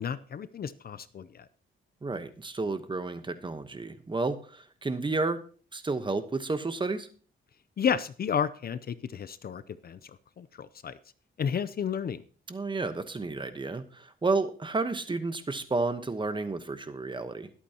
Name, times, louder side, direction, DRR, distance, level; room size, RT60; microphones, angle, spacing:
voice 1, 0.0-1.5 7.8-10.1 10.4-11.0 11.4-12.2, left 7 dB, 45° left, 15 dB, 0.6 m, -32 dB
voice 2, 2.0-5.4 5.7-7.1 12.5-17.5, right 3 dB, 25° right, 10 dB, 1.1 m, -31 dB
21.0 x 8.4 x 2.9 m, 0.41 s
cardioid pair, 120°, 21 cm